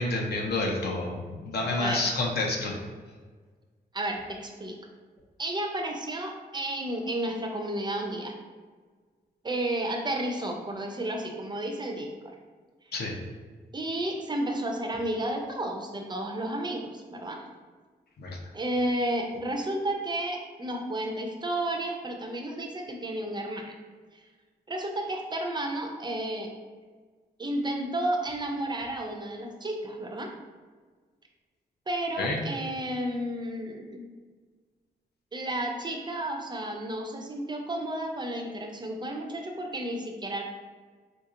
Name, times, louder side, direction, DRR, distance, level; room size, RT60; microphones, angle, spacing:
voice 1, 0.0-2.7 12.9-13.2 18.2-18.3 32.2-32.4, left 2 dB, 70° left, -1 dB, 0.6 m, -29 dB
voice 2, 1.7-2.1 3.9-4.7 5.4-8.4 9.4-12.4 13.7-17.4 18.5-23.8 24.1-24.2 24.7-26.5 27.4-30.3 31.9-34.0 35.3-40.4, right 1 dB, 25° right, 2 dB, 0.4 m, -32 dB
3.7 x 2.8 x 2.5 m, 1.5 s
wide cardioid pair, 120°, 17 cm